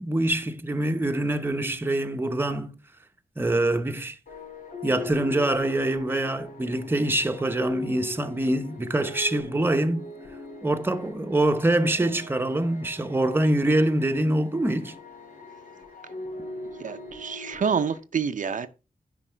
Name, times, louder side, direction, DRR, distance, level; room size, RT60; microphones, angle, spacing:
voice 1, 0.0-2.8 3.4-4.2 4.8-10.1 10.6-14.9, right 1 dB, 15° right, 0.8 m, -25 dB
sound 1, 4.3-18.0, left 2 dB, 85° left, 3.7 m, -40 dB
voice 2, 16.8-18.7, right 6 dB, 65° right, 0.6 m, -27 dB
10.0 x 5.3 x 4.4 m
wide cardioid pair, 120°, 14 cm